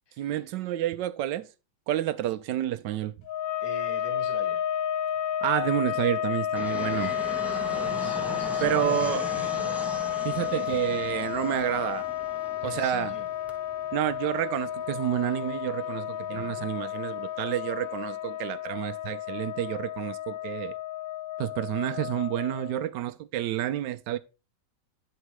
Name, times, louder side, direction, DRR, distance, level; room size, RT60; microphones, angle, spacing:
voice 1, 0.2-1.5 1.9-3.1 5.4-7.1 8.6-9.2 10.2-12.1 12.6-13.2 13.9-20.8 21.4-24.2, right 12 dB, 80° right, 1.2 m, -29 dB
sound 1, 3.2-22.9, left 11 dB, 70° left, 0.8 m, -32 dB
voice 2, 3.6-4.6 6.9-9.9 12.6-13.3 16.3-16.7, left 1 dB, 15° left, 1.4 m, -43 dB
Fixed-wing aircraft airplane, 6.5-15.6, right 1 dB, ahead, 0.6 m, -40 dB
9.6 x 4.5 x 4.6 m
omnidirectional pair, 1.9 m